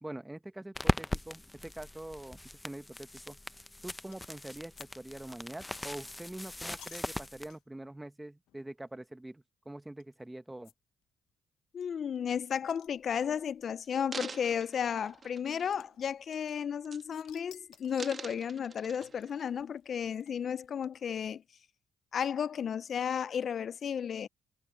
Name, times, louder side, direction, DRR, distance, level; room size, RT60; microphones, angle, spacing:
voice 1, 0.0-2.4 2.6-3.4 3.8-10.7, right 1 dB, 10° right, 1.2 m, -44 dB
sound 1, 0.7-7.5, left 1 dB, 10° left, 0.6 m, -38 dB
sound 2, 4.1-4.4 4.8-4.9 5.1-7.8 8.5-8.6 8.9-9.0 10.0-10.1 10.6-10.7 11.0-11.1 11.3-11.4 11.8-13.5 14.4-14.5 15.8-16.8 17.1-18.3 19.0-21.3, left 13 dB, 90° left, 0.8 m, -58 dB
voice 2, 11.7-21.4 22.1-24.3, left 8 dB, 55° left, 0.3 m, -33 dB
sound 3, 12.9-13.2 13.8-16.0 16.3-16.6 16.9-17.4 17.7-19.4 20.0-20.1, right 5 dB, 40° right, 1.4 m, -46 dB
cardioid pair, 90°, 0 cm